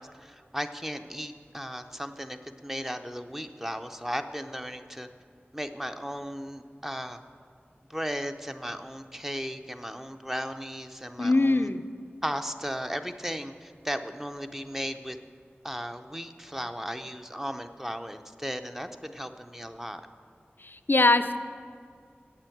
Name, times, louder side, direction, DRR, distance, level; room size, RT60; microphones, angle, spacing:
voice 1, 0.0-2.4 2.6-5.1 5.5-7.2 7.9-11.7 12.2-15.2 15.6-20.1, equal, 10° right, 7 dB, 0.5 m, -36 dB
voice 2, 11.2-11.8 20.6-21.4, left 2 dB, 55° left, 11 dB, 0.4 m, -22 dB
8.4 x 7.3 x 7.8 m, 2.3 s
wide cardioid pair, 45°, 4 cm